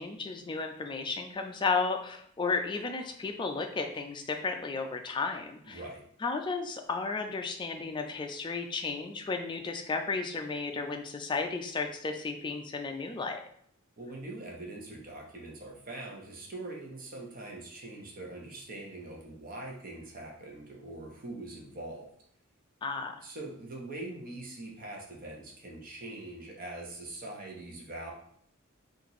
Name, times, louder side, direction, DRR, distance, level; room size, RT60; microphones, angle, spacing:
voice 1, 0.0-5.8 6.2-13.4 22.8-23.1, left 4 dB, 20° left, 5 dB, 0.3 m, -33 dB
voice 2, 5.7-6.0 14.0-22.1 23.2-28.1, right 2 dB, 40° right, -1 dB, 0.8 m, -43 dB
2.9 x 2.5 x 4.0 m, 0.66 s
head